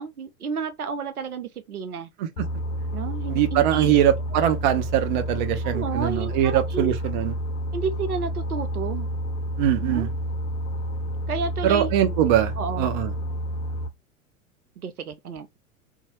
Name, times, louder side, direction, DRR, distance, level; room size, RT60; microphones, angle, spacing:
voice 1, 0.0-2.1 2.9-4.0 5.6-6.9 7.7-9.1 9.8-10.1 11.3-11.9 12.6-12.9 14.8-15.5, right 5 dB, 80° right, 0.6 m, -31 dB
Boat Water vehicle, 2.4-13.9, equal, 65° left, 0.6 m, -30 dB
voice 2, 3.3-7.4 9.6-10.1 11.6-13.1, right 11 dB, 35° right, 0.4 m, -22 dB
2.7 x 2.3 x 2.8 m
figure-of-eight pair, 90°, 44 cm